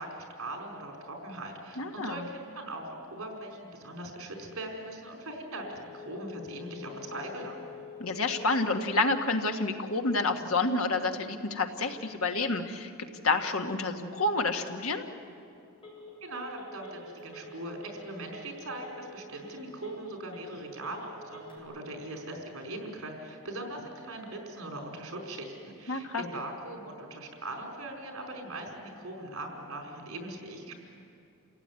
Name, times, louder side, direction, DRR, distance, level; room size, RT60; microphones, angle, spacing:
voice 1, 0.0-7.7 16.2-30.7, right 1 dB, 75° right, 2 dB, 4.8 m, -40 dB
voice 2, 1.8-2.2 8.0-15.0 25.9-26.2, left 3 dB, 75° left, 5 dB, 1.6 m, -29 dB
Telephone, 5.6-21.6, left 4 dB, 25° left, 7.7 m, -49 dB
28.5 x 17.0 x 9.7 m, 2.6 s
head